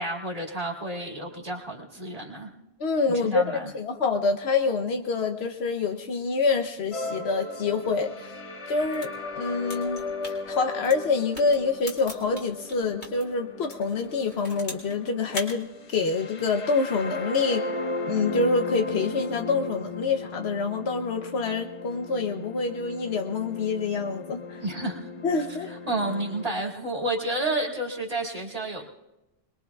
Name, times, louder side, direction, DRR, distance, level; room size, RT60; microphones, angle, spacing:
voice 1, 0.0-2.5 3.1-3.7 24.6-25.1 25.5-28.8, right 2 dB, 35° right, -1 dB, 2.4 m, -30 dB
voice 2, 2.8-8.3 8.7-9.1 9.4-17.6 18.1-24.6 25.2-25.7, left 4 dB, 90° left, 5 dB, 1.1 m, -26 dB
sound 1, 6.9-26.5, left 2 dB, 35° left, 0.8 m, -37 dB
sound 2, 8.7-13.2 13.6-15.0 15.3-15.6, left 1 dB, 65° left, 3.0 m, -40 dB
24.5 x 21.5 x 2.4 m, 0.97 s
omnidirectional pair, 1.0 m